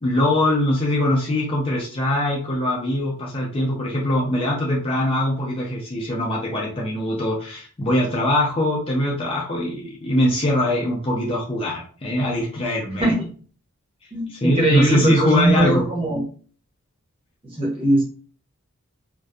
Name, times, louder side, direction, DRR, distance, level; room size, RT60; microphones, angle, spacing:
voice 1, 0.0-13.0 14.3-15.8, left 1 dB, 25° left, -3 dB, 0.5 m, -22 dB
voice 2, 13.0-13.3 14.1-16.2 17.6-18.0, right 1 dB, 25° right, -4 dB, 0.9 m, -20 dB
2.6 x 2.2 x 2.2 m, 0.43 s
head